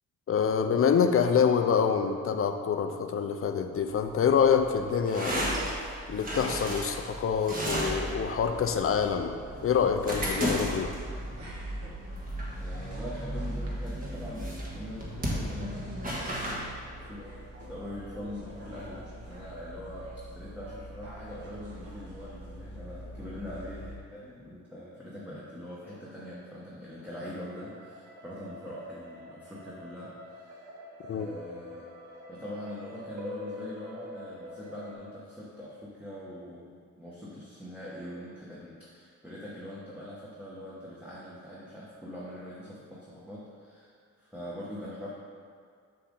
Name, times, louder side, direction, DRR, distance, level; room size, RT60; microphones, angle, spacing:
voice 1, 0.3-5.5 6.1-9.4 9.6-10.9 31.1-31.3, left 7 dB, 45° left, 7 dB, 0.5 m, -26 dB
sound 1, 3.8-16.6, equal, 25° right, 1.6 m, -34 dB
sound 2, 8.3-24.0, equal, 50° right, 1.7 m, -45 dB
voice 2, 12.5-17.2 17.7-30.6 31.0-31.9 32.3-45.1, left 1 dB, 5° right, -8 dB, 1.2 m, -43 dB
sound 3, 22.0-24.6 27.0-34.9, left 1 dB, 75° right, 1.0 m, -46 dB
6.8 x 6.3 x 3.8 m, 2.2 s
cardioid pair, 105°, 31 cm